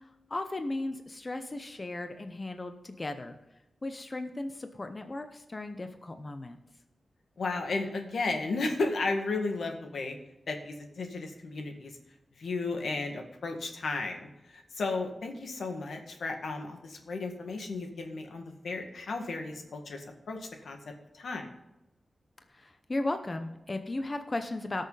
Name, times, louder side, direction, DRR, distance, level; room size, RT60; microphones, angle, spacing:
voice 1, 0.0-3.3 3.8-6.6 22.5-24.9, left 2 dB, 30° left, 7 dB, 0.8 m, -36 dB
voice 2, 7.4-10.1 10.5-12.0 12.4-20.8 21.1-21.5, left 3 dB, 90° left, 4 dB, 1.8 m, -34 dB
19.0 x 6.5 x 4.0 m, 0.94 s
wide cardioid pair, 135°, 0 cm